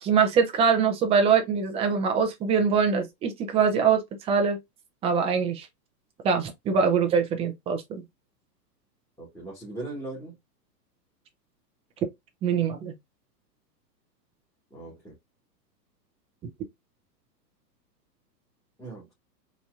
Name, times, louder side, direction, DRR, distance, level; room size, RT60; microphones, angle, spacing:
voice 1, 0.0-4.6 5.0-5.7 6.2-8.0 12.4-12.9, right 6 dB, 15° right, 0.5 m, -23 dB
voice 2, 9.2-10.3 14.7-15.1 18.8-19.1, right 2 dB, 5° left, 1.8 m, -39 dB
4.2 x 3.0 x 2.4 m
hypercardioid pair, 120°, 50 cm